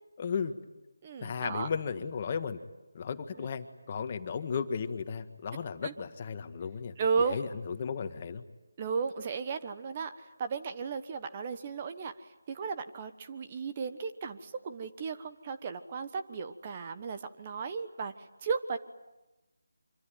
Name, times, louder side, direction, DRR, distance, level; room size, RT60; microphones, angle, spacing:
voice 1, 0.2-0.5 1.2-2.6 2.9-8.4, left 6 dB, 30° left, 8 dB, 1.7 m, -35 dB
voice 2, 1.0-1.7 3.4-3.5 5.8-5.9 7.0-7.4 8.8-12.1 12.5-18.1 18.4-18.8, right 5 dB, 30° right, 9 dB, 1.2 m, -34 dB
26.0 x 24.5 x 9.4 m, 1.0 s
figure-of-eight pair, 160°, 0 cm